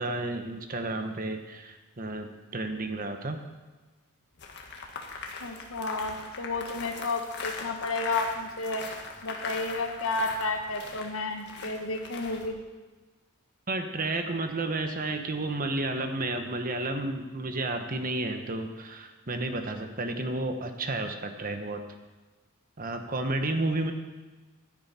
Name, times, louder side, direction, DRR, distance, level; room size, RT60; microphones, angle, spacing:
voice 1, 0.0-3.4 13.7-21.8 22.8-23.9, right 2 dB, 40° right, 6 dB, 1.1 m, -31 dB
sound 1, 4.4-12.5, left 4 dB, 55° left, 1.7 m, -40 dB
voice 2, 5.4-8.9 9.2-12.6, left 3 dB, 70° left, 4 dB, 1.5 m, -31 dB
15.5 x 10.5 x 4.3 m, 1.2 s
head